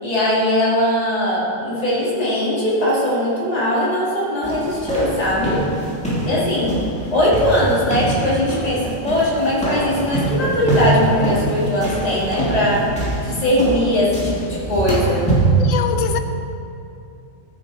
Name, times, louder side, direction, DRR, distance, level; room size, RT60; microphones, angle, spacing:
voice 1, 0.0-5.6 6.1-6.7 7.1-12.8 13.2-15.2, left 1 dB, 30° left, -7 dB, 2.6 m, -20 dB
sound 1, 4.4-15.6, right 2 dB, 5° left, 2.4 m, -23 dB
voice 2, 15.6-16.2, left 8 dB, 80° left, 8 dB, 1.1 m, -23 dB
13.5 x 7.4 x 4.9 m, 2.6 s
omnidirectional pair, 1.3 m